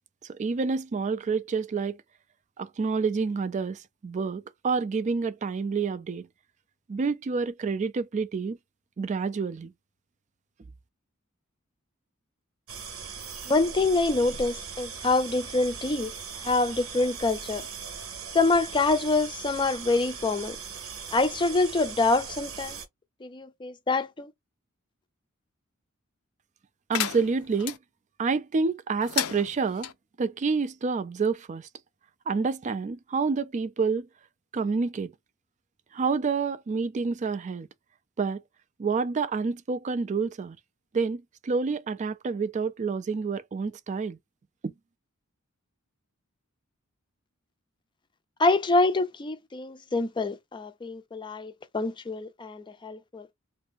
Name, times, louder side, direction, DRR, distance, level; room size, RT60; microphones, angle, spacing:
voice 1, 0.3-2.0 2.6-6.3 6.9-8.6 9.0-9.7 26.9-27.8 28.2-29.9 30.2-31.7 32.3-34.1 34.5-35.1 35.9-37.7 38.2-38.4 38.8-40.6 40.9-44.2 44.6-44.7, right 4 dB, 35° right, 0.3 m, -28 dB
sound 1, 12.7-22.9, right 6 dB, 85° right, 1.0 m, -39 dB
voice 2, 13.5-16.1 16.4-17.7 18.3-20.6 21.1-22.8 23.2-24.3 48.4-53.3, left 3 dB, 20° left, 0.5 m, -26 dB
sound 2, 26.9-27.8 29.0-29.9, left 11 dB, 80° left, 0.5 m, -32 dB
2.6 x 2.5 x 3.6 m
head